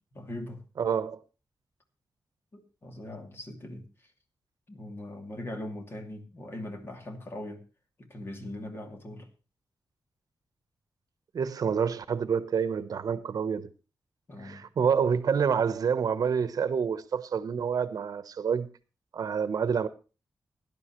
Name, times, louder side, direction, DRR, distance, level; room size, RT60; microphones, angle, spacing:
voice 1, 0.1-0.6 2.5-4.1 4.7-7.6 8.0-9.3 14.3-14.7, left 1 dB, 35° left, 2.6 m, -41 dB
voice 2, 0.8-1.2 11.3-13.7 14.4-18.7 19.1-19.9, right 6 dB, 65° right, 1.0 m, -28 dB
17.5 x 11.0 x 3.1 m
wide cardioid pair, 155°, 7 cm